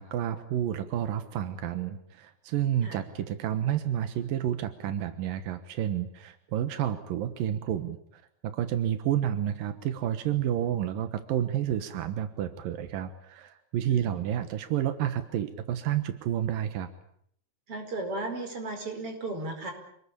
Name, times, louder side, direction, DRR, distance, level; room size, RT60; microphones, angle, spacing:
voice 1, 0.0-16.9, right 10 dB, 90° right, 10 dB, 3.0 m, -30 dB
voice 2, 13.8-14.2 17.7-19.7, right 2 dB, 40° right, 5 dB, 6.0 m, -35 dB
27.5 x 20.5 x 8.6 m, 0.68 s
omnidirectional pair, 3.9 m